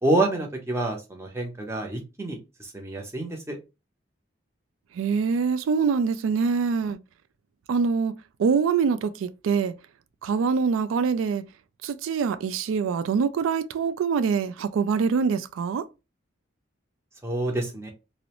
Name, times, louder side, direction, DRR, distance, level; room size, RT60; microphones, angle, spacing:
voice 1, 0.0-3.6 17.2-17.9, right 2 dB, 15° right, 0.6 m, -27 dB
voice 2, 5.0-7.0 7.7-8.1 8.4-9.7 10.2-11.4 11.8-15.9, right 5 dB, 85° right, 0.3 m, -24 dB
2.5 x 2.0 x 2.9 m
head